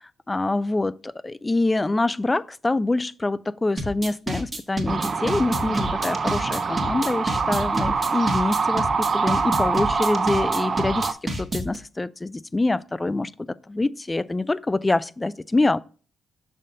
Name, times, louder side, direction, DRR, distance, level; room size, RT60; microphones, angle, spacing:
voice 1, 0.3-13.3 13.7-15.8, left 2 dB, 20° left, 0.4 m, -25 dB
sound 1, 3.8-11.8, right 1 dB, 25° right, 1.4 m, -29 dB
sound 2, 4.9-11.1, right 5 dB, 45° right, 0.6 m, -25 dB
6.5 x 5.5 x 2.6 m
supercardioid pair, 55°, 0 cm